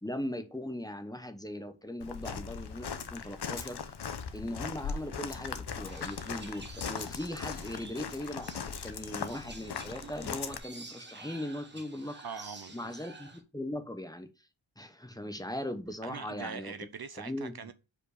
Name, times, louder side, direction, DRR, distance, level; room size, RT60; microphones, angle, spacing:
voice 1, 0.0-3.9 4.3-12.2 12.7-14.3 14.8-16.7 17.2-17.7, left 1 dB, 10° left, 0.9 m, -39 dB
Walk footsteps, 2.0-10.6, left 6 dB, 55° left, 0.8 m, -39 dB
sound 1, 5.8-13.4, right 3 dB, 20° right, 1.2 m, -50 dB
voice 2, 12.2-12.9 16.0-17.7, right 6 dB, 50° right, 0.6 m, -42 dB
5.2 x 4.4 x 4.9 m
wide cardioid pair, 65°, 49 cm